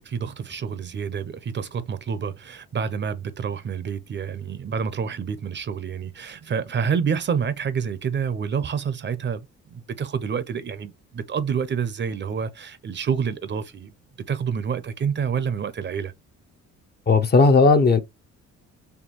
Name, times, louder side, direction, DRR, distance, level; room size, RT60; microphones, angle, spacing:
voice 1, 0.0-13.9 14.3-16.1, right 6 dB, 40° right, 0.5 m, -28 dB
voice 2, 17.1-18.0, left 4 dB, 35° left, 0.6 m, -15 dB
4.3 x 2.6 x 2.9 m
cardioid pair, 90°, 30 cm